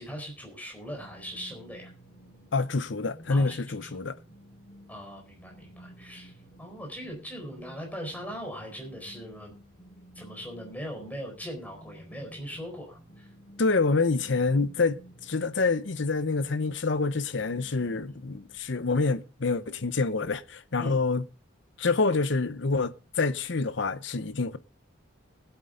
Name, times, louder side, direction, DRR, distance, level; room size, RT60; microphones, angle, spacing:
voice 1, 0.0-1.9 3.3-3.9 4.9-9.5 10.1-13.3 20.8-21.1, equal, 10° left, 4.2 m, -40 dB
sound 1, 0.9-18.6, equal, 30° left, 5.1 m, -52 dB
voice 2, 2.5-4.2 13.6-21.2 21.8-24.6, left 3 dB, 65° left, 0.8 m, -27 dB
20.0 x 8.3 x 3.8 m
head